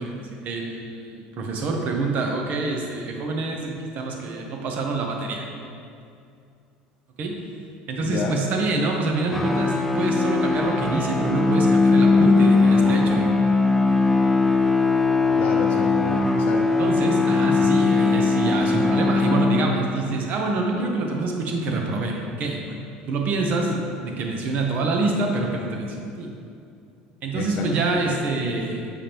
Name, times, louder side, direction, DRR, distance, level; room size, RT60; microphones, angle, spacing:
voice 1, 0.0-5.4 7.2-7.4 7.9-13.6 16.8-23.7 23.9-26.3 27.2-28.9, right 3 dB, 50° right, 1 dB, 0.9 m, -26 dB
voice 2, 8.0-8.4 15.4-16.8 23.7-23.8 27.3-28.0, left 5 dB, 55° left, 1 dB, 0.6 m, -30 dB
sound 1, 9.3-20.0, left 3 dB, 5° left, 0.4 m, -20 dB
6.8 x 5.0 x 3.0 m, 2.5 s
supercardioid pair, 110°, 3 cm